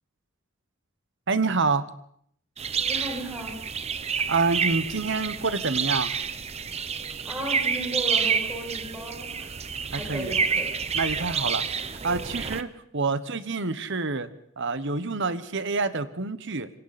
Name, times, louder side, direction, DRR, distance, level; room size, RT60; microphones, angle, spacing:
voice 1, 1.3-1.8 4.3-6.1 9.9-10.3 10.9-11.6 12.0-12.7 12.9-14.3 14.6-16.7, right 4 dB, 60° right, 13 dB, 1.2 m, -27 dB
sound 1, 2.6-12.6, right 6 dB, 30° right, 0.9 m, -29 dB
voice 2, 2.9-3.6 7.2-9.5 9.9-10.7, right 1 dB, 10° right, -1 dB, 7.1 m, -35 dB
27.0 x 24.0 x 4.3 m, 0.66 s
head